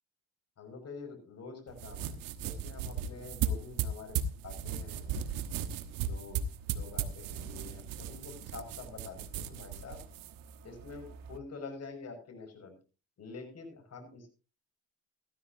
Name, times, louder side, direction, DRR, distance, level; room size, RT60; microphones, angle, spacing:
voice 1, 0.6-4.2 4.4-5.0 6.0-10.0 10.6-12.8 13.2-14.3, left 4 dB, 45° left, 6 dB, 6.1 m, -47 dB
sound 1, 1.7-11.4, right 7 dB, 70° right, 1.3 m, -37 dB
16.0 x 14.0 x 2.8 m, 0.34 s
supercardioid pair, 70°, 35 cm